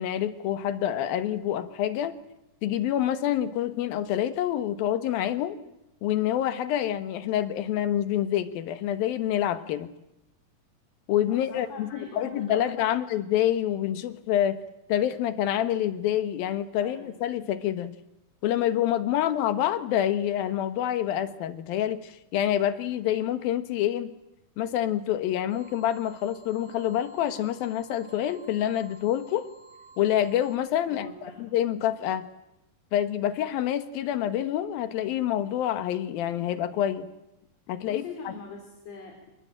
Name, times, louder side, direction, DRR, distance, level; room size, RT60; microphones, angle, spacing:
voice 1, 0.0-2.1 2.6-5.6 6.0-9.9 11.1-11.9 12.2-14.6 14.9-18.0 18.4-24.1 24.6-29.5 30.0-31.1 31.4-32.3 32.9-37.1 37.7-38.3, left 11 dB, 85° left, 11 dB, 3.1 m, -27 dB
voice 2, 11.3-13.0 16.8-17.2 30.8-31.5 37.8-39.3, left 3 dB, 45° left, 2 dB, 4.7 m, -42 dB
sound 1, 25.5-30.6, right 2 dB, 50° right, 3.3 m, -53 dB
27.0 x 20.5 x 8.9 m, 0.88 s
omnidirectional pair, 4.1 m